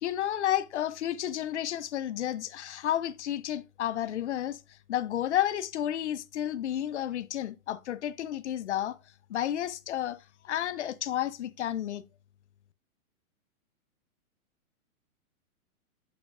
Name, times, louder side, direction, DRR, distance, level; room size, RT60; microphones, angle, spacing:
voice 1, 0.0-9.0 9.3-10.2 10.4-12.0, left 11 dB, 55° left, 0.5 m, -31 dB
6.8 x 6.2 x 2.4 m
hypercardioid pair, 170°, 44 cm